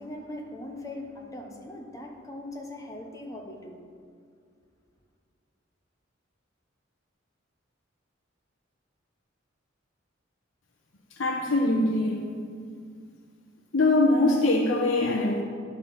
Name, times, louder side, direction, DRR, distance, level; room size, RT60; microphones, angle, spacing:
voice 1, 0.0-3.8, left 1 dB, 15° left, 0 dB, 0.9 m, -40 dB
voice 2, 11.2-12.2 13.7-15.4, left 2 dB, 75° left, -3 dB, 1.0 m, -23 dB
10.5 x 3.7 x 7.3 m, 2.2 s
head